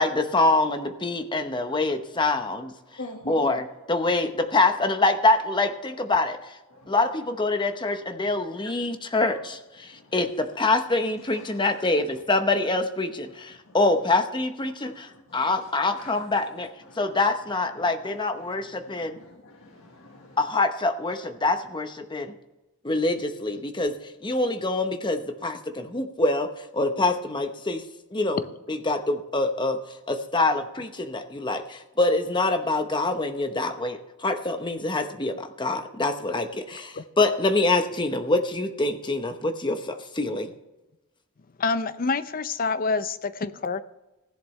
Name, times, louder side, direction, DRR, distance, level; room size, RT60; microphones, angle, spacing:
voice 1, 0.0-2.7 3.3-3.6 3.9-6.4 6.9-16.7 17.0-19.2 20.4-22.3 22.8-23.9 24.2-27.8 28.1-28.4 28.7-29.8 30.1-40.5, left 2 dB, 20° left, 7 dB, 0.9 m, -25 dB
voice 2, 1.1-2.5 2.8-3.6 5.8-5.9 6.7-7.8 8.0-12.3 12.6-12.7 13.2-14.1 14.6-20.4, left 1 dB, 65° left, 2 dB, 1.6 m, -48 dB
voice 3, 41.6-43.8, left 4 dB, 40° left, 13 dB, 0.6 m, -27 dB
16.0 x 11.0 x 3.2 m, 1.0 s
head